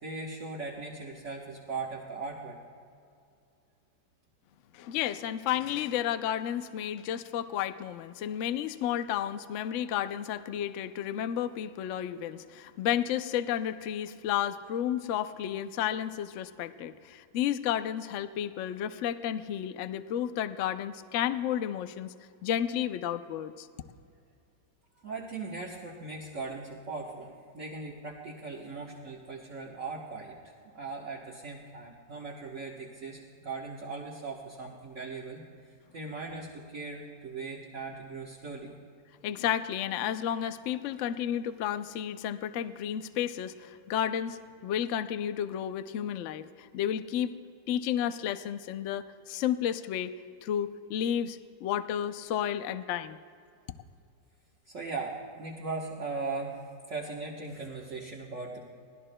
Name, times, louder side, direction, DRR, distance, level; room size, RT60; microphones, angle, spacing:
voice 1, 0.0-2.6 25.0-35.4 35.9-38.7 54.7-56.6 56.9-58.7, right 3 dB, 45° right, -5 dB, 1.5 m, -39 dB
voice 2, 4.7-22.1 22.4-23.7 39.2-47.3 47.7-50.1 50.4-53.2, left 10 dB, 75° left, 11 dB, 0.6 m, -32 dB
25.0 x 18.0 x 2.2 m, 2.4 s
omnidirectional pair, 1.9 m